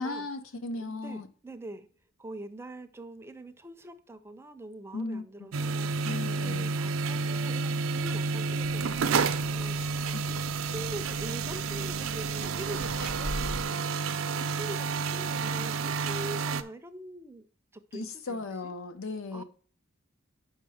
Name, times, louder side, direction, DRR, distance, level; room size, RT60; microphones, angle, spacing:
voice 1, 0.0-1.3 4.9-5.5 6.0-6.8 10.1-10.2 17.9-19.4, left 3 dB, 90° left, 0.7 m, -36 dB
voice 2, 0.8-1.9 2.2-5.9 6.3-17.5 17.9-18.7 19.3-19.4, right 1 dB, 10° right, 0.4 m, -44 dB
sound 1, 5.5-16.6, right 4 dB, 80° right, 0.5 m, -30 dB
sound 2, 8.6-13.6, equal, 70° left, 2.1 m, -42 dB
5.7 x 4.4 x 6.3 m
head